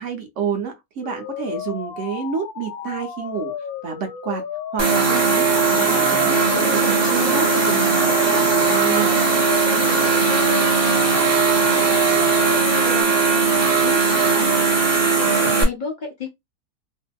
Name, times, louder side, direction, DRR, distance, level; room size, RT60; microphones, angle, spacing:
voice 1, 0.0-3.5 3.8-4.4 4.7-9.2, right 6 dB, 65° right, 0.8 m, -29 dB
sound 1, 1.0-13.0, left 8 dB, 75° left, 1.0 m, -33 dB
sound 2, 4.8-15.6, right 4 dB, 25° right, 0.6 m, -18 dB
voice 2, 10.1-10.6 10.9-12.5 12.8-16.3, left 5 dB, 45° left, 0.6 m, -35 dB
2.8 x 2.5 x 2.2 m
omnidirectional pair, 1.6 m